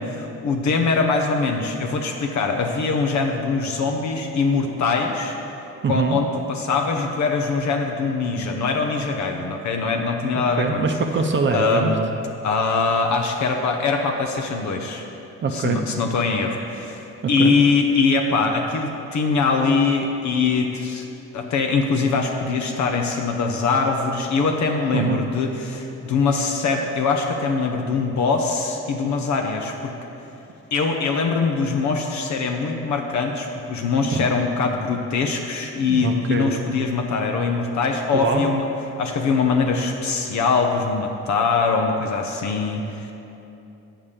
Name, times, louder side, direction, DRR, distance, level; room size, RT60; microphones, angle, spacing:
voice 1, 0.0-5.4 5.9-10.9 11.5-11.9 12.4-15.0 15.5-21.1 21.3-29.9 30.7-38.6 39.0-43.1, left 4 dB, 65° left, 3 dB, 0.8 m, -22 dB
voice 2, 5.8-6.2 10.3-11.9 15.4-15.8 17.4-17.5 24.9-25.2 34.1-34.3 35.9-36.5 38.1-38.4, right 5 dB, 40° right, 4 dB, 0.6 m, -23 dB
7.3 x 5.6 x 6.7 m, 2.9 s
cardioid pair, 90°, 30 cm